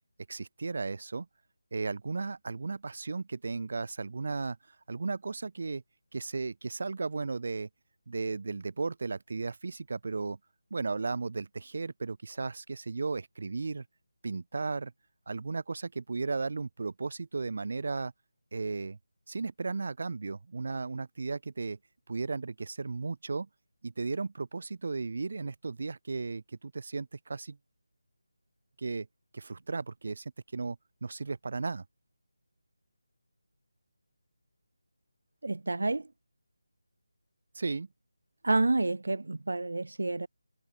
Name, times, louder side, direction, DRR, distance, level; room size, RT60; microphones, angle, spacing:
voice 1, 0.3-1.3 1.7-4.6 4.9-5.8 6.1-7.7 8.1-10.4 10.7-13.8 14.2-14.9 15.3-18.1 18.5-19.0 19.3-21.8 22.1-23.5 23.8-27.6 28.8-29.1 29.3-31.8 37.5-37.9, right 4 dB, 40° right, 6.2 m, -35 dB
voice 2, 35.4-36.1 38.4-40.3, right 2 dB, 65° right, 1.7 m, -29 dB
figure-of-eight pair, 180°, 0 cm